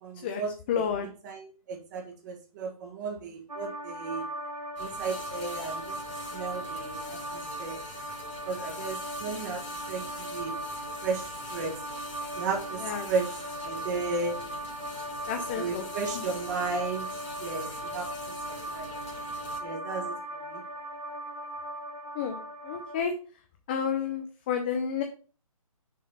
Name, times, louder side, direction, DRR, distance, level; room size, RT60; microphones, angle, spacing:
voice 1, 0.0-4.3 4.8-6.0 6.3-7.8 8.4-10.6 11.0-11.8 12.3-14.4 15.6-19.0 19.6-20.6, right 4 dB, 30° right, 2 dB, 1.5 m, -35 dB
voice 2, 0.7-1.1 12.8-13.1 15.3-15.8 16.1-16.3 22.1-22.4 22.6-23.1 23.7-25.0, left 7 dB, 15° left, 5 dB, 0.4 m, -30 dB
sound 1, 3.5-23.0, right 1 dB, 75° right, 2.0 m, -38 dB
sound 2, 4.8-19.6, left 3 dB, 55° left, 2.2 m, -45 dB
6.4 x 3.8 x 5.5 m, 0.38 s
figure-of-eight pair, 150°, 19 cm